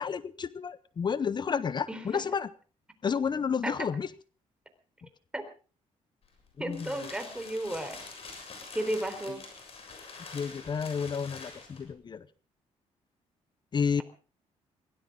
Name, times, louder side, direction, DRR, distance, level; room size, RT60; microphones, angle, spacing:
voice 1, 0.0-2.5 3.0-4.1 6.6-6.9 10.3-12.3 13.7-14.0, left 6 dB, 40° left, 17 dB, 0.8 m, -31 dB
voice 2, 1.9-2.2 3.6-3.7 5.3-5.4 6.6-8.0 8.7-9.4, right 1 dB, 10° right, 7 dB, 3.9 m, -33 dB
sound 1, 6.2-11.9, left 4 dB, 55° left, 6.9 m, -46 dB
22.5 x 17.0 x 3.7 m, 0.37 s
cardioid pair, 105°, 12 cm